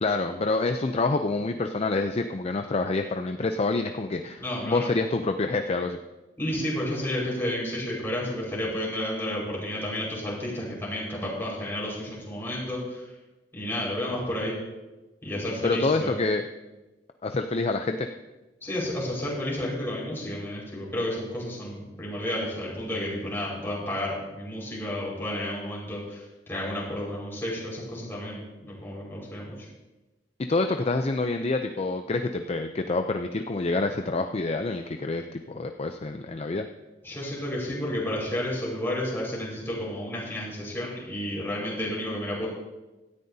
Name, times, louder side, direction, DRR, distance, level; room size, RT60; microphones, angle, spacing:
voice 1, 0.0-6.0 15.6-16.4 17.2-18.1 30.4-36.7, left 3 dB, 35° left, 6 dB, 0.5 m, -27 dB
voice 2, 4.4-4.9 6.4-13.0 13.5-14.5 15.2-16.2 18.6-29.5 37.0-42.5, left 1 dB, 15° left, -5 dB, 4.8 m, -31 dB
17.5 x 13.0 x 2.8 m, 1.1 s
head